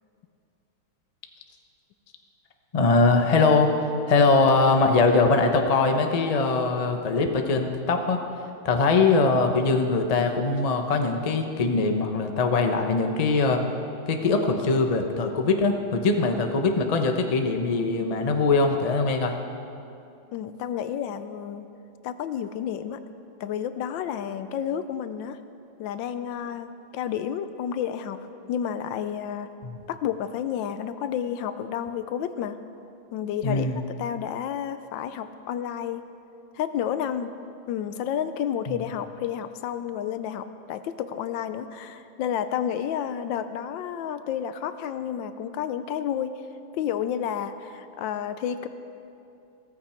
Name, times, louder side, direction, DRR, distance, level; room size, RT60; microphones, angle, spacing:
voice 1, 2.7-8.2 8.6-13.6 14.1-19.3 29.6-29.7 33.4-33.8 38.7-38.8, left 3 dB, 60° left, 4 dB, 0.4 m, -22 dB
voice 2, 20.3-21.7 22.0-23.0 23.4-25.4 25.8-28.2 28.5-29.5 29.9-32.6 33.1-36.0 36.5-37.3 37.7-46.5 46.7-48.7, left 9 dB, 75° left, 11 dB, 1.2 m, -30 dB
15.5 x 14.0 x 4.4 m, 2.7 s
omnidirectional pair, 2.3 m